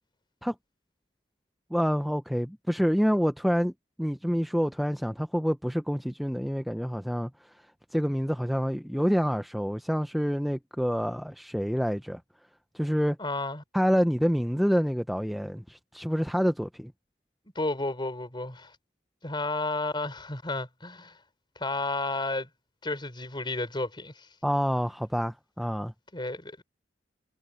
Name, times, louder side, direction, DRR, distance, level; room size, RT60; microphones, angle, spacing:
voice 1, 1.7-3.7 4.0-7.5 7.9-12.2 12.7-13.2 13.7-16.9 24.4-25.9, equal, ahead, 0.6 m, -27 dB
voice 2, 13.2-13.6 17.5-18.8 19.2-21.2 21.6-22.5 22.8-24.3 26.1-26.6, left 2 dB, 25° left, 4.2 m, -32 dB
head